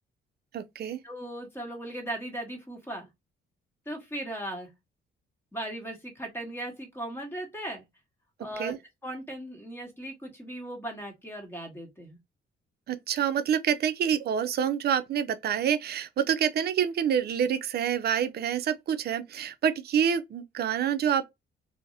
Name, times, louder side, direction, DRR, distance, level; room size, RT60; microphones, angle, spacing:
voice 1, 0.5-1.0 8.6-8.8 12.9-21.3, right 8 dB, 55° right, 0.4 m, -27 dB
voice 2, 1.0-3.1 3.9-4.7 5.5-7.8 8.4-8.8 9.0-12.2, right 1 dB, 10° left, 1.1 m, -37 dB
2.5 x 2.0 x 2.6 m
cardioid pair, 90°, 20 cm